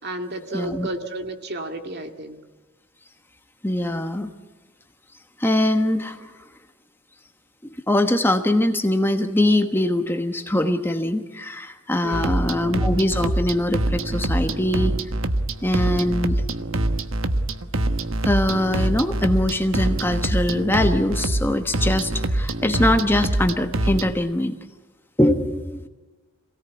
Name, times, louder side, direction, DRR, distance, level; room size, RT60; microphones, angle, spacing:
voice 1, 0.0-2.4 12.0-12.6, right 1 dB, 50° right, 5 dB, 2.3 m, -32 dB
voice 2, 0.5-0.9 3.6-4.3 5.4-6.3 7.9-14.9 15.6-16.4 18.2-24.6 25.2-25.9, left 1 dB, 10° left, 6 dB, 1.1 m, -22 dB
sound 1, 12.1-24.1, right 1 dB, 70° right, 1.2 m, -24 dB
27.0 x 17.5 x 9.6 m, 1.2 s
head